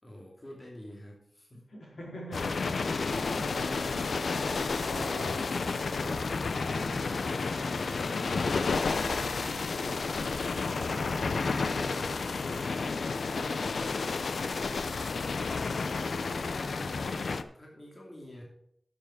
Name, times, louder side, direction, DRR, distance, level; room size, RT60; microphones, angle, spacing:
voice 1, 0.0-1.7 16.5-18.4, left 1 dB, 25° left, 2.6 m, -48 dB
voice 2, 1.5-8.7 9.1-10.4 10.6-14.2, equal, 70° left, 4.2 m, -45 dB
sound 1, 2.3-17.4, left 4 dB, 85° left, 0.6 m, -31 dB
12.0 x 7.2 x 4.9 m
wide cardioid pair, 100°, 0 cm